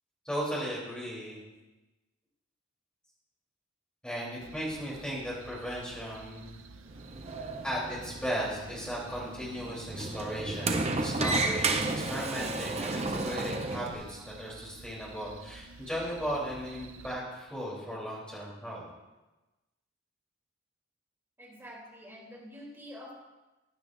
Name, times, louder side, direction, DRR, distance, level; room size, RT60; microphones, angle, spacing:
voice 1, 0.3-1.4 4.0-6.5 7.6-18.9, equal, 5° left, -6 dB, 3.6 m, -36 dB
sound 1, 4.4-17.1, right 4 dB, 70° right, 0.7 m, -51 dB
Sliding door, 6.9-13.9, right 2 dB, 30° right, 0.7 m, -32 dB
voice 2, 21.4-23.1, equal, 10° right, -5 dB, 3.3 m, -47 dB
15.5 x 10.0 x 2.7 m, 1.1 s
head